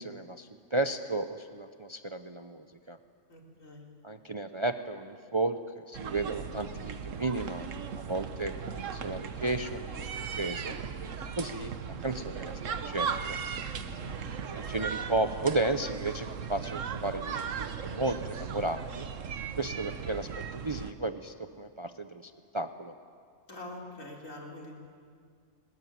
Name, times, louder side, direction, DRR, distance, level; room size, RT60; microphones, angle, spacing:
voice 1, 0.0-3.0 4.0-5.6 5.9-7.7 8.0-10.8 11.4-13.4 14.5-19.1 19.6-22.9, right 2 dB, 30° right, 8 dB, 0.5 m, -34 dB
voice 2, 3.3-3.8 13.7-14.1 23.5-24.7, left 1 dB, 80° left, -1 dB, 4.0 m, -45 dB
sound 1, 5.9-20.9, right 6 dB, 75° right, 1.4 m, -37 dB
20.5 x 20.0 x 9.5 m, 2.2 s
omnidirectional pair, 1.3 m